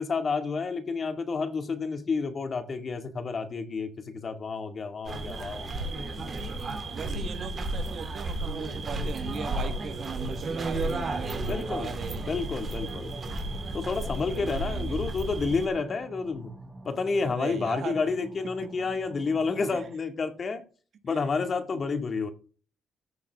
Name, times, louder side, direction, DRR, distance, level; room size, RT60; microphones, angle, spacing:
voice 1, 0.0-5.8 9.4-9.6 11.4-11.9 12.2-13.1 13.7-16.5 16.8-20.6 21.0-22.3, left 4 dB, 45° left, 2.2 m, -30 dB
sound 1, 5.0-15.7, right 2 dB, 40° right, 2.8 m, -33 dB
voice 2, 6.8-12.4 14.2-15.0 17.2-18.0 18.6-18.8 19.7-19.8 21.1-21.2, right 6 dB, 60° right, 1.5 m, -39 dB
sound 2, 8.7-20.0, right 1 dB, 15° right, 1.6 m, -45 dB
14.5 x 6.0 x 3.6 m
cardioid pair, 90°, 0 cm